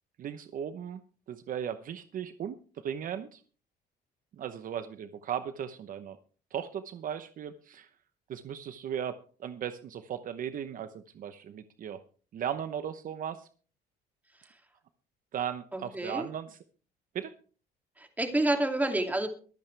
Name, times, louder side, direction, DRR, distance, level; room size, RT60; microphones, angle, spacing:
voice 1, 0.2-1.0 1.3-3.4 4.4-6.2 6.5-7.9 8.3-12.0 12.3-13.5 15.3-16.6 17.1-17.3, right 9 dB, 55° right, 10 dB, 0.9 m, -37 dB
voice 2, 15.7-16.3 18.0-19.3, right 1 dB, 10° right, 4 dB, 2.6 m, -28 dB
23.5 x 8.9 x 3.4 m, 0.40 s
cardioid pair, 110°, 17 cm